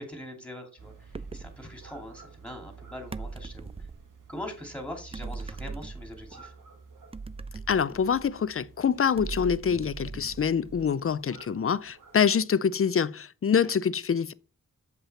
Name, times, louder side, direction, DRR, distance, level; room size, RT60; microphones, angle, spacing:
voice 1, 0.0-3.7 4.3-6.5, left 1 dB, 5° left, 2.4 m, -42 dB
sound 1, 0.8-12.3, right 5 dB, 80° right, 1.5 m, -52 dB
sound 2, 1.1-1.6 3.1-4.1 5.1-6.4 7.1-8.5 9.2-11.1, right 4 dB, 20° right, 0.3 m, -40 dB
voice 2, 7.7-14.3, left 7 dB, 45° left, 0.4 m, -25 dB
7.4 x 5.6 x 4.2 m
wide cardioid pair, 90°, 31 cm